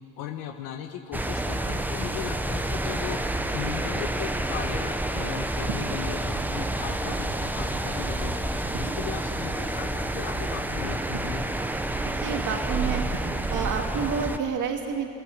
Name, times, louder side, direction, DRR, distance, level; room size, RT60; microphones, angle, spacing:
voice 1, 0.2-3.2 3.5-8.4 8.8-11.5, left 9 dB, 75° left, 4 dB, 1.3 m, -37 dB
sound 1, 1.1-14.4, right 1 dB, 5° right, 0.8 m, -29 dB
sound 2, 1.3-14.0, right 6 dB, 70° right, 2.7 m, -39 dB
voice 2, 12.2-13.0 13.5-15.1, right 6 dB, 55° right, 3 dB, 2.2 m, -29 dB
22.5 x 16.5 x 7.3 m, 2.5 s
cardioid pair, 120°, 37 cm